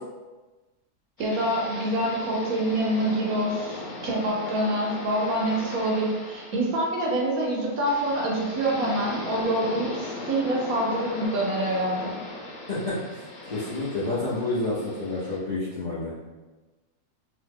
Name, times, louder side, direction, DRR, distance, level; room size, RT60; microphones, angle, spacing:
sound 1, 1.2-15.4, left 2 dB, 70° left, 1.1 m, -38 dB
voice 1, 1.2-12.1, right 1 dB, 70° right, -2 dB, 1.0 m, -26 dB
voice 2, 12.7-16.1, left 2 dB, 35° left, -10 dB, 0.7 m, -29 dB
2.8 x 2.4 x 3.6 m, 1.2 s
omnidirectional pair, 1.7 m